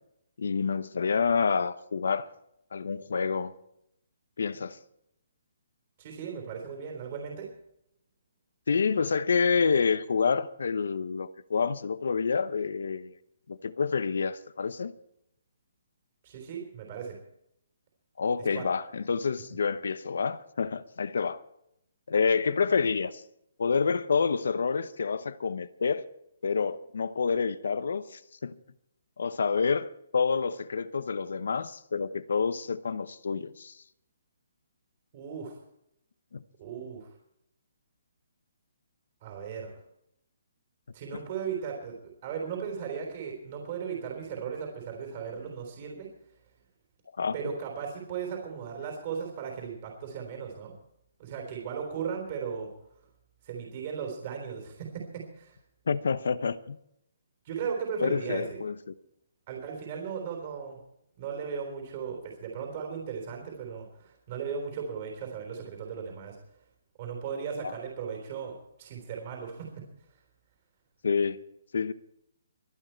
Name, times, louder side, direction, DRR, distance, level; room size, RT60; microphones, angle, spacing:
voice 1, 0.4-2.3 2.7-3.5 4.4-4.8 8.7-13.2 13.5-14.9 18.2-21.4 22.1-23.2 23.6-26.0 26.4-28.5 29.2-33.8 36.3-36.4 47.2-47.3 55.9-56.8 58.0-58.7 67.6-67.7 71.0-71.4 71.7-71.9, left 5 dB, 75° left, 0.9 m, -28 dB
voice 2, 6.0-7.5 16.2-17.2 18.4-18.6 35.1-35.6 36.6-37.2 39.2-39.8 40.9-46.1 47.3-50.7 51.2-52.7 53.4-55.6 57.4-58.6 59.5-60.8 61.2-66.4 67.0-68.5 68.8-69.8, right 6 dB, 35° right, 3.6 m, -36 dB
24.0 x 9.2 x 4.5 m
hypercardioid pair, 165°, 0 cm